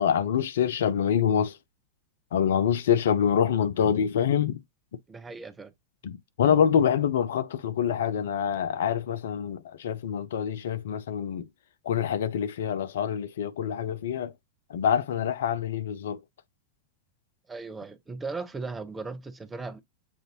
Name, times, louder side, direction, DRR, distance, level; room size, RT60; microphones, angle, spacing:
voice 1, 0.0-1.6 2.3-4.6 6.0-11.4 11.9-14.3 14.7-16.2, left 8 dB, 60° left, 0.5 m, -26 dB
voice 2, 5.1-5.7 17.5-19.8, right 4 dB, 15° right, 0.7 m, -37 dB
7.1 x 2.6 x 2.9 m
figure-of-eight pair, 90°, 0 cm